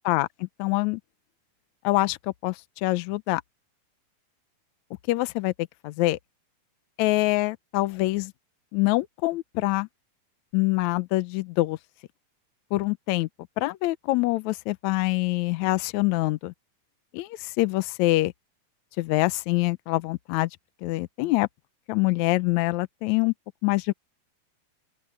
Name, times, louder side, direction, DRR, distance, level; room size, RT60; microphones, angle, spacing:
voice 1, 0.0-1.0 1.8-2.2 2.4-3.4 5.1-5.5 5.8-6.2 7.0-8.3 8.7-9.9 10.5-11.8 12.7-13.3 13.6-16.5 17.1-18.3 19.0-20.5 20.8-21.5 21.9-23.3 23.6-23.9, left 20 dB, 90° left, 1.6 m, -25 dB
open air
omnidirectional pair, 4.2 m